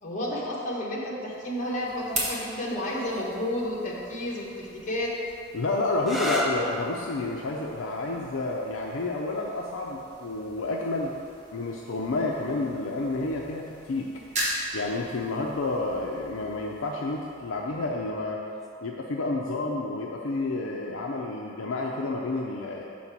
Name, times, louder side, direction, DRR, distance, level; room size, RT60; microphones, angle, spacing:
voice 1, 0.0-5.1, left 1 dB, 35° left, -4 dB, 1.2 m, -31 dB
sound 1, 1.3-18.2, right 1 dB, 30° right, 1.3 m, -40 dB
voice 2, 5.5-11.1 11.5-14.1 14.7-18.4 18.8-22.8, left 2 dB, 65° left, -1 dB, 0.5 m, -30 dB
sound 2, 6.0-13.4 14.4-14.9 18.5-18.8, equal, ahead, 0.5 m, -37 dB
5.8 x 4.2 x 6.0 m, 2.5 s
head